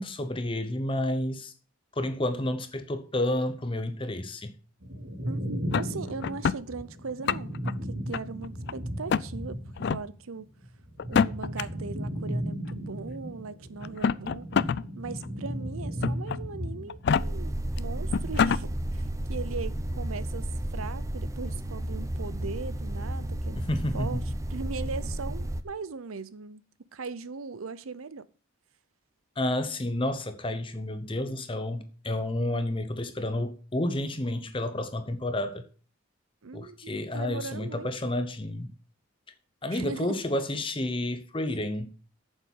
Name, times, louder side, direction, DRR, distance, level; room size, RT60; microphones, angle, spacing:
voice 1, 0.0-1.5 1.9-4.5 23.7-24.2 29.4-35.7 36.5-38.7 39.6-41.9, left 1 dB, 25° left, 0.8 m, -30 dB
sound 1, 4.8-10.1 10.4-19.0 19.3-20.0, equal, 65° right, 2.2 m, -36 dB
voice 2, 5.2-10.5 11.1-14.5 15.0-17.5 17.8-20.5 20.7-24.2 24.5-26.6 26.9-28.2 36.4-38.1 39.7-40.2, right 4 dB, 90° right, 0.7 m, -39 dB
sound 2, 5.7-6.6 7.1-7.7 8.1-8.7 9.1-9.3 9.8-10.0 11.0-11.6 12.7-12.8 13.8-14.8 15.2-15.3 16.0-16.4 16.9-17.2 17.8-17.9 18.1-18.6, left 6 dB, 55° left, 0.3 m, -26 dB
sound 3, 17.2-25.6, right 1 dB, 15° right, 0.6 m, -32 dB
8.6 x 7.3 x 5.4 m
head